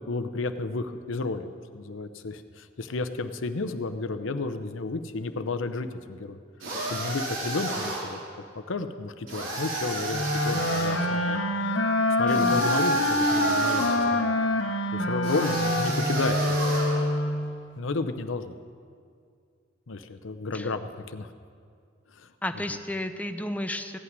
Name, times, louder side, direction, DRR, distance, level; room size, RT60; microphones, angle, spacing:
voice 1, 0.0-6.4 6.9-8.2 8.7-11.4 12.2-14.3 14.9-16.6 17.8-18.5 19.9-21.3 22.1-22.3, left 3 dB, 85° left, 9 dB, 0.7 m, -32 dB
sound 1, 6.6-8.2 9.3-11.1 12.3-14.1 15.2-17.1, right 1 dB, 85° right, 4.0 m, -31 dB
sound 2, 10.1-17.6, left 1 dB, 70° left, 1.0 m, -25 dB
voice 2, 12.3-12.6 20.5-20.8 22.4-24.0, left 1 dB, 10° left, 7 dB, 0.6 m, -32 dB
15.5 x 5.9 x 9.5 m, 2.2 s
head